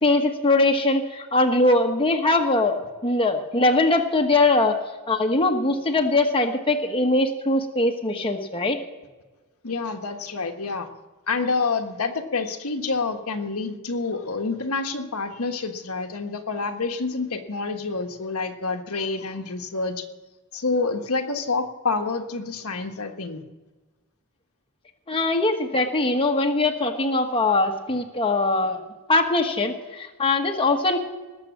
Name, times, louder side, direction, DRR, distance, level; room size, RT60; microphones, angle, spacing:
voice 1, 0.0-2.8 3.0-4.8 5.1-8.8 25.1-31.0, left 2 dB, 25° left, 3 dB, 1.3 m, -21 dB
voice 2, 9.6-10.9 11.3-20.0 20.5-23.4, left 4 dB, 75° left, 4 dB, 1.4 m, -28 dB
19.5 x 7.6 x 7.3 m, 1.2 s
head